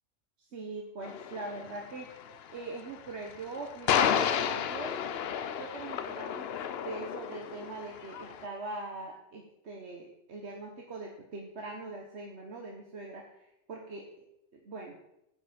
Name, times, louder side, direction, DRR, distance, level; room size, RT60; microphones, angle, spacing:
voice 1, 0.4-2.1 2.5-5.0 5.6-6.5 6.8-14.1 14.5-15.0, right 3 dB, 70° right, 1 dB, 1.4 m, -42 dB
sound 1, 1.0-8.5, left 8 dB, 65° left, 0.8 m, -32 dB
10.0 x 6.9 x 5.1 m, 0.84 s
omnidirectional pair, 1.2 m